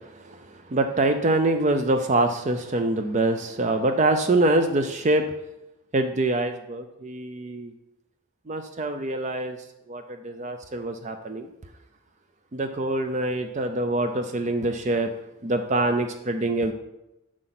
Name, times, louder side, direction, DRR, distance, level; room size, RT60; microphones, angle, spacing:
voice 1, 0.7-5.3 5.9-7.7 8.5-9.6 9.9-11.5 12.5-15.1 15.4-16.7, right 2 dB, 35° right, 7 dB, 0.5 m, -24 dB
7.9 x 6.4 x 5.9 m, 0.94 s
head